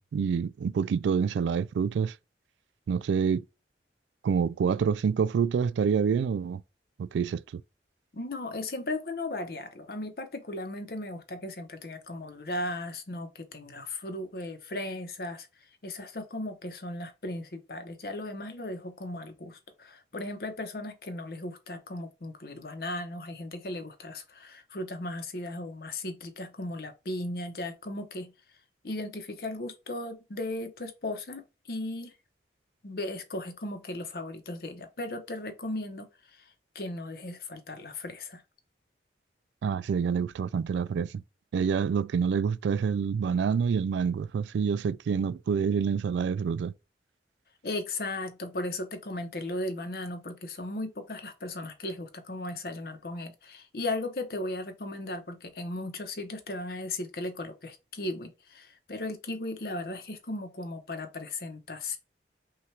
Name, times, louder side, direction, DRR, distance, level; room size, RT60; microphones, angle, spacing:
voice 1, 0.0-2.1 2.9-3.4 4.2-6.6 7.0-7.6 39.6-41.2 41.5-46.7, right 6 dB, 90° right, 0.3 m, -27 dB
voice 2, 8.1-15.5 15.8-28.3 28.8-32.1 32.8-38.4 47.6-62.0, left 2 dB, 55° left, 0.9 m, -36 dB
5.6 x 2.4 x 3.2 m
head